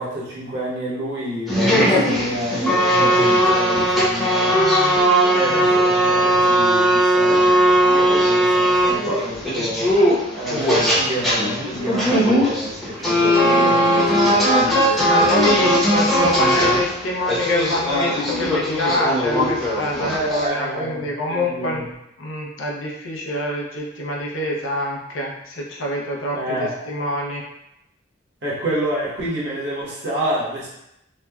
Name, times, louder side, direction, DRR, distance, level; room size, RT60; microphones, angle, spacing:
voice 1, 0.0-4.6 5.3-9.9 10.3-15.1 20.0-21.9 26.3-26.7 28.4-30.7, equal, 60° right, -7 dB, 1.0 m, -28 dB
sound 1, 1.5-20.4, equal, ahead, 0.7 m, -18 dB
voice 2, 4.5-5.0 5.5-5.6 14.7-21.8 22.2-27.5, left 1 dB, 85° left, -1 dB, 0.5 m, -26 dB
3.0 x 2.1 x 2.2 m, 0.82 s
head